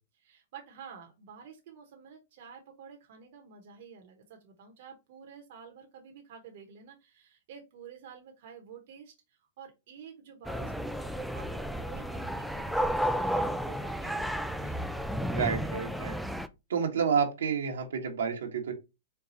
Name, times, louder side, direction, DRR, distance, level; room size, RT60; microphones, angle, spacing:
voice 1, 0.2-14.8, right 6 dB, 60° right, 2 dB, 1.1 m, -50 dB
sound 1, 10.5-16.5, equal, ahead, 0.3 m, -32 dB
voice 2, 15.3-16.2 16.7-18.7, right 6 dB, 85° right, 2 dB, 1.3 m, -29 dB
4.6 x 2.4 x 4.0 m, 0.25 s
hypercardioid pair, 125°, 0 cm